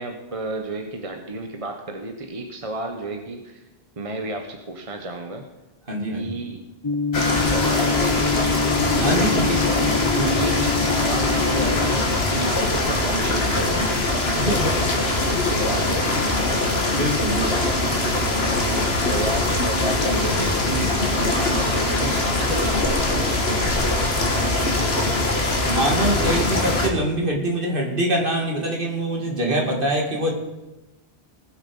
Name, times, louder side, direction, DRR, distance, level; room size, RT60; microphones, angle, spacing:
voice 1, 0.0-3.6 4.0-5.4 6.1-6.6 7.5-8.1 8.4-8.5 10.0-14.0 14.6-14.7 14.9-16.5 17.5-18.2 19.1-24.2, right 2 dB, 35° right, 4 dB, 1.2 m, -32 dB
voice 2, 5.9-6.3 9.0-9.9 14.4-14.7 16.9-17.5 25.7-30.3, right 1 dB, 60° right, 0 dB, 2.8 m, -24 dB
sound 1, 6.8-12.0, left 5 dB, 30° left, 0.4 m, -25 dB
sound 2, 7.1-26.9, left 2 dB, 80° left, 2.0 m, -22 dB
19.5 x 7.9 x 5.5 m, 1.0 s
omnidirectional pair, 1.0 m